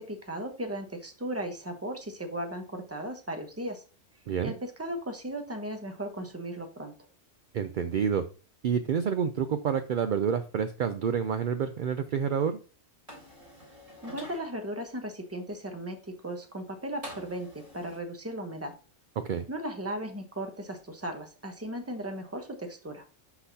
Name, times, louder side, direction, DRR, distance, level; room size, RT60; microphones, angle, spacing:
voice 1, 0.0-3.8 4.4-6.9 14.0-18.7 19.5-23.0, right 1 dB, 15° right, 5 dB, 0.9 m, -36 dB
voice 2, 7.5-8.2 8.6-12.6 19.2-19.5, right 7 dB, 60° right, 9 dB, 0.5 m, -28 dB
sound 1, 13.1-14.4 17.0-18.0, equal, 30° right, 3.4 m, -46 dB
11.5 x 4.0 x 2.7 m, 0.35 s
omnidirectional pair, 1.3 m